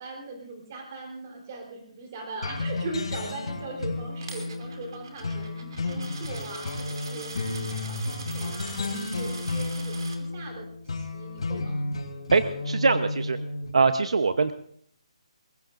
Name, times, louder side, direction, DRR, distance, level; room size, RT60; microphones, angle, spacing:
voice 1, 0.0-11.8, right 3 dB, 25° right, 1 dB, 3.9 m, -40 dB
sound 1, 2.4-13.7, left 2 dB, 65° left, 3.5 m, -32 dB
Coin (dropping), 4.2-10.2, right 4 dB, 45° right, 2.9 m, -43 dB
voice 2, 12.3-13.4 13.7-14.5, right 4 dB, 65° right, 10 dB, 0.9 m, -22 dB
23.0 x 21.5 x 2.6 m, 0.62 s
hypercardioid pair, 175°, 3 cm